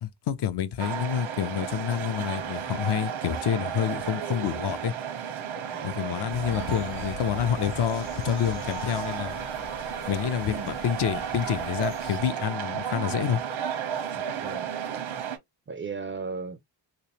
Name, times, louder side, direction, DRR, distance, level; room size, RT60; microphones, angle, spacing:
voice 1, 0.0-4.9 5.8-9.4 10.1-13.4, left 9 dB, 60° left, 0.6 m, -28 dB
sound 1, 0.8-15.4, right 8 dB, 80° right, 1.0 m, -33 dB
voice 2, 5.7-6.1 6.4-6.8 10.4-10.8 14.2-14.7 15.7-16.6, right 4 dB, 30° right, 0.4 m, -37 dB
sound 2, 6.3-12.2, left 5 dB, 90° left, 0.8 m, -43 dB
3.4 x 3.0 x 2.8 m
wide cardioid pair, 130°, 48 cm